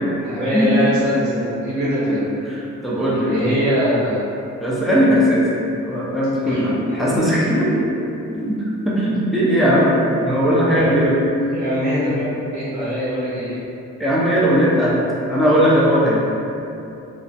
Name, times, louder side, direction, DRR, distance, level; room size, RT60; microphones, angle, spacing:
voice 1, 0.2-2.3 3.1-4.2 6.5-6.6 11.5-12.3 12.5-13.6, equal, 90° right, -13 dB, 1.0 m, -22 dB
voice 2, 2.4-3.5 4.6-7.8 8.3-8.6 8.8-9.9 10.2-11.2 12.1-12.2 14.0-14.9 15.3-16.2, equal, ahead, -8 dB, 0.6 m, -18 dB
2.4 x 2.1 x 2.7 m, 2.7 s
cardioid pair, 90°, 30 cm